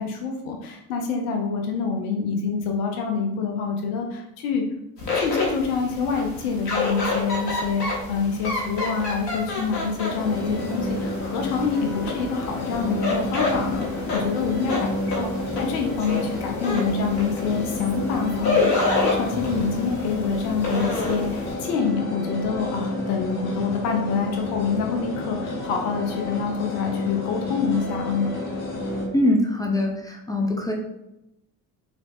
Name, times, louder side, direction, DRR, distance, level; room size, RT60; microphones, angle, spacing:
voice 1, 0.0-4.6 5.1-14.9 15.2-15.3 15.5-28.3, left 5 dB, 65° left, 2 dB, 0.7 m, -26 dB
sound 1, 5.0-21.5, left 3 dB, 80° left, 1.1 m, -29 dB
sound 2, 10.1-29.1, left 2 dB, 35° left, 1.2 m, -30 dB
voice 2, 29.1-30.7, left 1 dB, 10° left, 0 dB, 0.4 m, -22 dB
4.0 x 3.2 x 2.6 m, 0.89 s
figure-of-eight pair, 50°, 49 cm